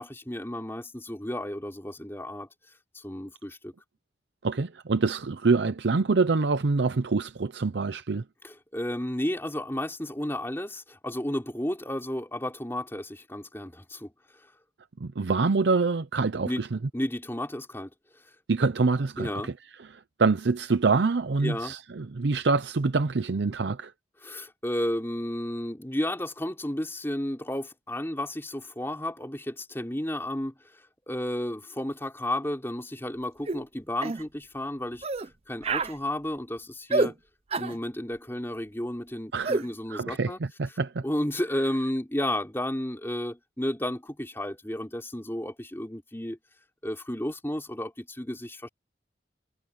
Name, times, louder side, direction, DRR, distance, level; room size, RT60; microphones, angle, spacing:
voice 1, 0.0-2.5 2.9-3.7 8.4-14.1 14.4-14.5 16.4-16.6 16.9-17.9 19.2-19.5 21.4-21.7 24.2-37.1 37.5-40.4 41.0-46.4 46.8-48.7, left 1 dB, 15° left, 3.6 m, -32 dB
voice 2, 4.4-8.2 15.0-16.8 18.5-19.5 19.9-23.9 39.3-39.6 39.9-40.3 40.6-41.0, right 4 dB, 80° right, 0.6 m, -25 dB
sound 1, 33.5-33.6 34.0-34.2 35.0-35.3 35.6-36.0 36.9-37.1 37.5-37.8 39.4-39.7, right 3 dB, 35° right, 0.6 m, -27 dB
head